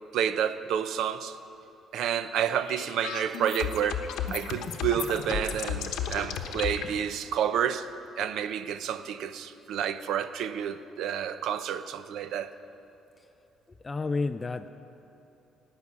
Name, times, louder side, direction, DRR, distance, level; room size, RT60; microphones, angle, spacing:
voice 1, 0.1-1.4 1.9-7.9 8.2-12.5, right 9 dB, 65° right, 0.6 m, -30 dB
sound 1, 2.5-6.9, left 8 dB, 80° left, 1.0 m, -34 dB
voice 2, 13.8-14.7, left 3 dB, 15° left, 0.3 m, -30 dB
17.0 x 6.1 x 9.5 m
cardioid pair, 170°, 0 cm